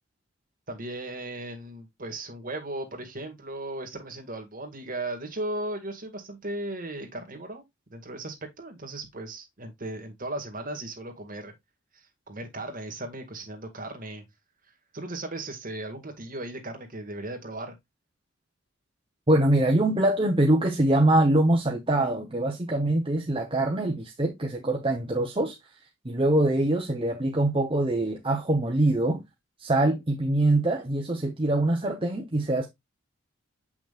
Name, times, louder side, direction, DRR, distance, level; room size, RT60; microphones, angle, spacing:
voice 1, 0.7-7.6 7.9-11.5 11.9-14.2 14.9-17.8, right 1 dB, 45° right, 1.9 m, -36 dB
voice 2, 19.3-25.5 26.0-29.2 29.6-32.7, right 1 dB, 25° right, 0.9 m, -24 dB
7.2 x 6.0 x 2.4 m
head